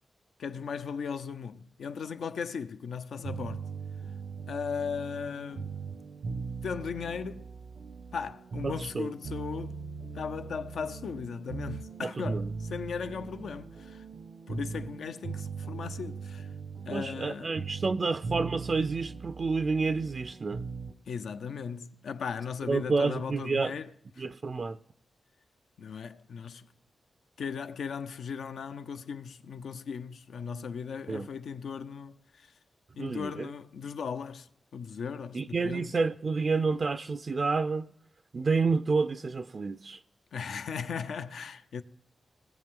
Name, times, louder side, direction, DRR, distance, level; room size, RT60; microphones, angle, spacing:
voice 1, 0.4-3.6 4.5-5.8 6.6-7.5 8.1-9.8 10.1-14.0 14.5-16.5 16.9-17.5 21.1-23.9 24.2-24.4 25.8-26.7 27.4-32.5 33.0-34.5 34.7-35.9 40.3-41.8, left 6 dB, 90° left, 0.6 m, -37 dB
sound 1, 3.2-20.9, right 4 dB, 85° right, 0.9 m, -40 dB
voice 2, 8.6-9.1 12.0-12.5 16.9-20.6 22.7-23.7 24.2-24.8 31.1-31.3 33.0-33.5 35.3-37.9 38.3-40.0, right 4 dB, 45° right, 0.4 m, -29 dB
20.0 x 7.5 x 3.7 m
wide cardioid pair, 105°, 0 cm